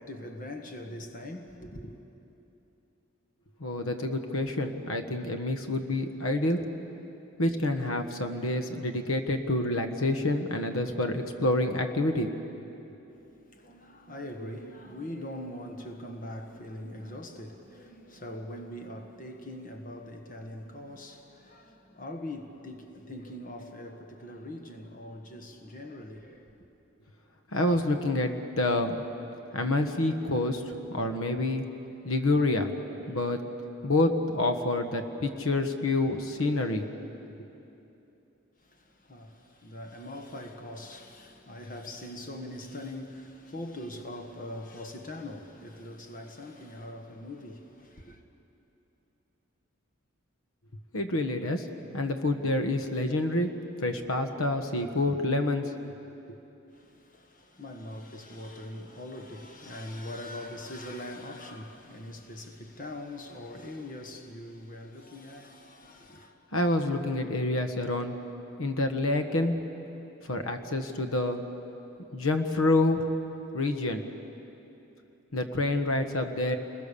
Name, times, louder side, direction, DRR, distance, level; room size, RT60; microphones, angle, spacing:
voice 1, 0.0-2.0 13.1-26.5 38.6-48.2 56.7-66.3, left 1 dB, 40° left, 1.6 m, -42 dB
voice 2, 3.6-6.6 7.4-12.3 27.5-29.0 29.5-30.6 30.9-31.6 32.0-32.7 33.1-33.4 33.8-36.9 50.9-51.7 51.9-53.5 53.8-55.7 66.5-68.1 68.6-69.6 70.2-71.4 72.1-73.0 73.5-74.0 75.3-76.6, left 2 dB, 85° left, 1.4 m, -27 dB
29.5 x 21.0 x 6.9 m
head